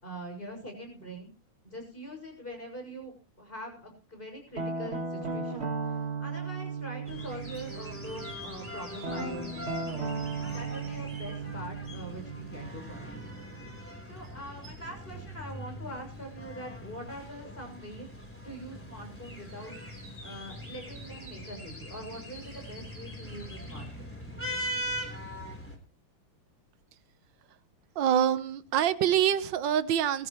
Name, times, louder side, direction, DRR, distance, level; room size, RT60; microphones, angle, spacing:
voice 1, 0.0-1.3 1.6-5.7 6.2-9.7 10.0-10.1 10.5-13.1 14.1-18.1 18.4-19.8 20.2-23.9, right 1 dB, 25° left, 7.0 m, -43 dB
Guitar, 4.6-8.3 9.0-13.7, right 4 dB, 30° right, 2.0 m, -36 dB
sound 1, 7.1-25.8, equal, 5° left, 3.7 m, -41 dB
voice 2, 28.0-30.3, right 10 dB, 60° right, 1.6 m, -25 dB
22.0 x 14.5 x 3.2 m
omnidirectional pair, 2.4 m